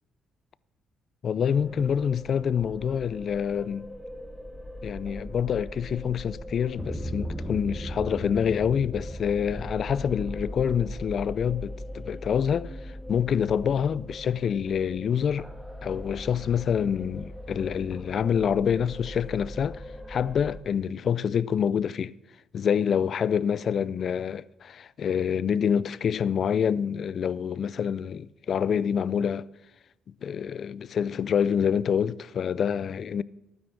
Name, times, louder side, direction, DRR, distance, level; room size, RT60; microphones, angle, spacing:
voice 1, 1.2-3.9 4.8-15.5 15.8-19.8 20.1-22.1 22.5-29.5 30.2-33.2, left 7 dB, 55° left, 0.4 m, -27 dB
sound 1, 1.5-20.6, equal, 5° left, 1.4 m, -39 dB
12.0 x 9.5 x 6.0 m
cardioid pair, 80°, 0 cm